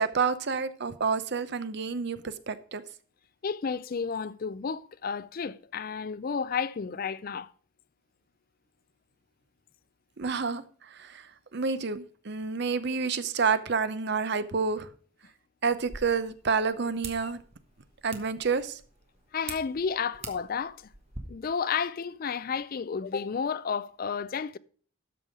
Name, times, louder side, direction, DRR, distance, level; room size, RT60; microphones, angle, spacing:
voice 1, 0.0-2.8 10.2-10.6 11.0-11.2 11.5-14.9 15.6-17.4 18.0-18.8, right 5 dB, 50° right, 0.7 m, -29 dB
voice 2, 3.4-7.5 17.2-17.3 19.3-20.8 21.3-24.6, left 6 dB, 40° left, 0.4 m, -32 dB
sound 1, 15.7-21.2, right 4 dB, 30° right, 1.3 m, -46 dB
12.5 x 5.5 x 4.9 m
head